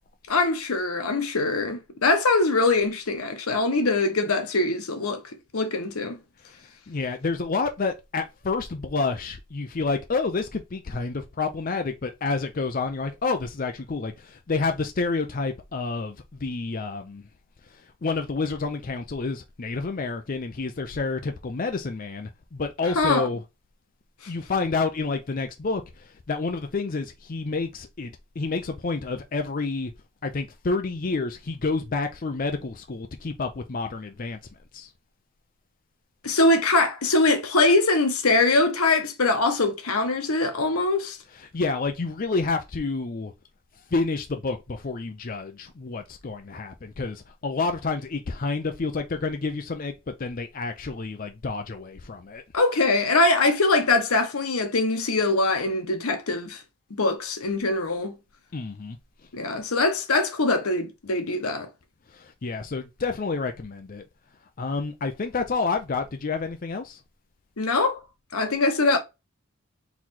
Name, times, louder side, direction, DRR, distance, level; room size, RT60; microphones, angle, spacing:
voice 1, 0.3-5.2 5.5-6.2 23.0-23.3 36.2-41.2 52.5-56.6 56.9-58.2 59.3-61.7 67.6-68.0 68.3-69.0, left 2 dB, 85° left, 1.0 m, -22 dB
voice 2, 6.9-17.2 17.7-23.4 24.3-29.9 30.2-34.4 34.7-34.9 41.4-43.3 43.9-52.4 58.5-59.0 62.1-64.0 64.6-67.0, left 4 dB, 40° left, 0.5 m, -29 dB
4.0 x 3.1 x 4.2 m
head